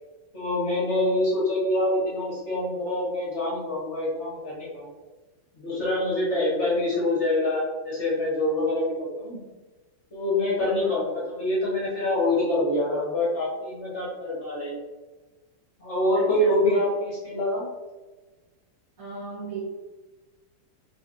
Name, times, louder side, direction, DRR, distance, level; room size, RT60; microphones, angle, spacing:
voice 1, 0.3-4.9 5.6-9.4 10.1-14.8 15.8-17.7, left 1 dB, 35° left, -6 dB, 1.3 m, -25 dB
voice 2, 10.6-11.0 16.1-16.9 19.0-19.6, right 4 dB, 60° right, -4 dB, 0.8 m, -39 dB
3.9 x 3.5 x 3.7 m, 1.2 s
omnidirectional pair, 2.4 m